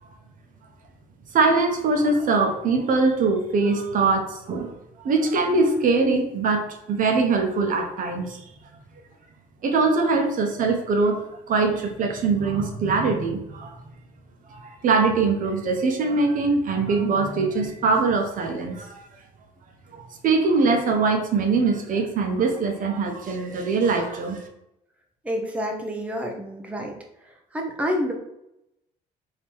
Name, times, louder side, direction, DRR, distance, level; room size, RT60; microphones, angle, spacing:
voice 1, 1.3-4.7 5.0-8.4 9.6-13.7 14.5-19.0 19.9-24.5, right 4 dB, 50° right, 4 dB, 0.8 m, -22 dB
voice 2, 25.2-26.9 27.5-28.1, equal, 10° right, 1 dB, 0.7 m, -28 dB
3.6 x 2.8 x 4.4 m, 0.84 s
cardioid pair, 110°, 17 cm